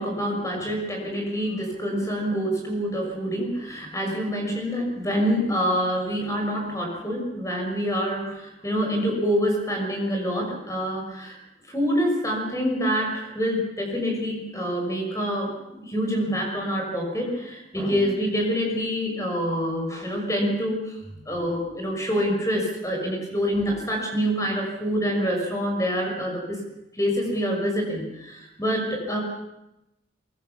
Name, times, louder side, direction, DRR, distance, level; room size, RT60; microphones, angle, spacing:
voice 1, 0.0-11.4 11.7-21.0 21.2-26.6 26.9-29.2, equal, 15° left, 1 dB, 6.3 m, -26 dB
23.0 x 22.5 x 7.1 m, 0.91 s
head